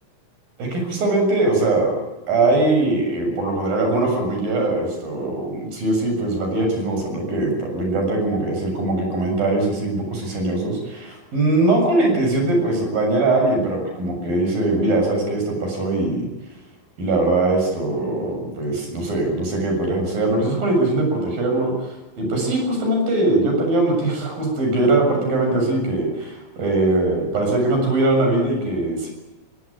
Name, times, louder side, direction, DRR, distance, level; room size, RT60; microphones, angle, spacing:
voice 1, 0.6-1.9 2.3-16.3 17.0-29.1, right 2 dB, 75° right, 2 dB, 9.0 m, -21 dB
23.5 x 19.5 x 8.7 m, 1.0 s
omnidirectional pair, 4.1 m